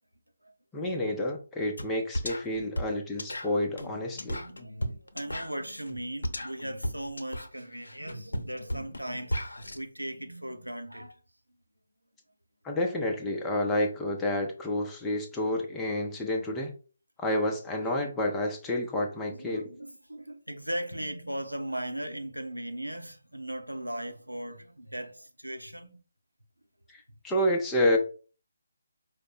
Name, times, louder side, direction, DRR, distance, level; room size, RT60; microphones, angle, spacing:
voice 1, 0.7-4.4 12.6-16.7 17.2-19.7 26.9-28.0, left 1 dB, 10° left, 0.6 m, -29 dB
sound 1, 1.8-1.9 2.1-9.8, equal, 70° left, 0.7 m, -35 dB
voice 2, 3.9-11.2 19.3-26.0, right 1 dB, 90° right, 0.8 m, -38 dB
5.0 x 2.2 x 4.2 m
figure-of-eight pair, 145°, 0 cm